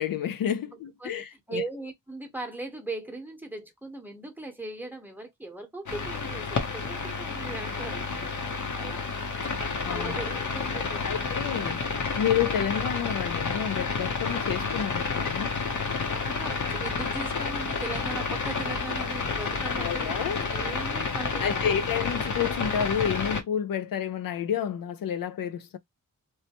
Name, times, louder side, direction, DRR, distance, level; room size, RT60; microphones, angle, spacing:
voice 1, 0.0-1.6 9.8-10.1 11.0-11.8 12.2-15.5 19.8-20.5 21.4-25.8, left 9 dB, 80° left, 0.5 m, -30 dB
voice 2, 1.0-8.3 8.7-9.2 9.8-11.5 16.1-20.2 20.5-21.9, right 2 dB, 5° right, 0.9 m, -39 dB
sound 1, 5.9-23.4, left 4 dB, 60° left, 0.9 m, -30 dB
3.0 x 2.1 x 2.9 m
wide cardioid pair, 95°, 34 cm